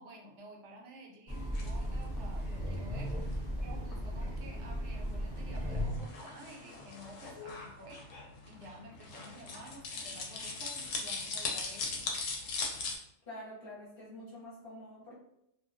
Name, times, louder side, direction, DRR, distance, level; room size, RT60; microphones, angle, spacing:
voice 1, 0.0-8.0 8.4-12.1, right 1 dB, 70° right, -1 dB, 0.9 m, -51 dB
sound 1, 1.3-13.0, left 4 dB, 85° left, 0.9 m, -41 dB
Train, 1.3-6.2, equal, 10° left, 0.3 m, -36 dB
voice 2, 13.3-15.2, left 1 dB, 55° left, -6 dB, 0.9 m, -47 dB
2.3 x 2.2 x 2.4 m, 0.79 s
omnidirectional pair, 1.3 m